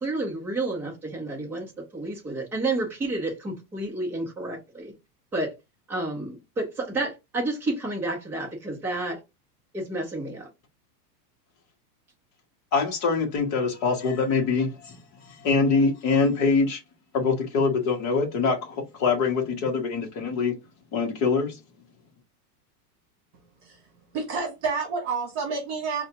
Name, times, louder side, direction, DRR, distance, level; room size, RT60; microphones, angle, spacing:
voice 1, 0.0-1.7 1.9-4.9 5.3-5.5 5.9-9.2 9.7-10.5, right 2 dB, 5° right, 0.5 m, -30 dB
voice 2, 12.7-15.0 15.3-16.8 17.1-20.6 20.9-21.6, left 4 dB, 25° left, 0.8 m, -24 dB
voice 3, 23.6-26.1, right 5 dB, 45° right, 1.3 m, -30 dB
4.7 x 2.2 x 2.8 m
supercardioid pair, 175°, 48 cm